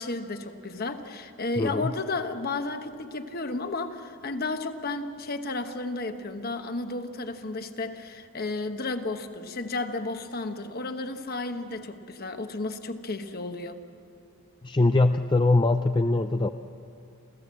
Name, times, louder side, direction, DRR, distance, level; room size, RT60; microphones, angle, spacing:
voice 1, 0.0-13.8, left 3 dB, 45° left, 7 dB, 1.1 m, -33 dB
voice 2, 1.6-1.9 14.6-16.5, left 2 dB, 20° left, 7 dB, 0.4 m, -22 dB
28.5 x 14.5 x 7.6 m, 2.7 s
head